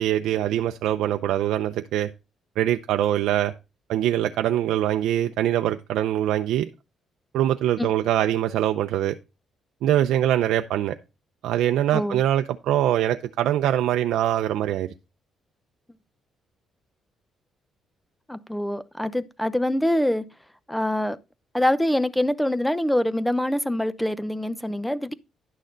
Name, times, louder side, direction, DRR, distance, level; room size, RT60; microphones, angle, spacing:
voice 1, 0.0-2.1 2.6-3.5 3.9-6.7 7.3-9.2 9.8-11.0 11.4-14.9, right 12 dB, 85° right, 0.5 m, -23 dB
voice 2, 18.3-20.2 20.7-21.2 21.5-25.1, left 1 dB, 5° left, 0.7 m, -24 dB
11.0 x 6.4 x 3.9 m
cardioid pair, 90°, 0 cm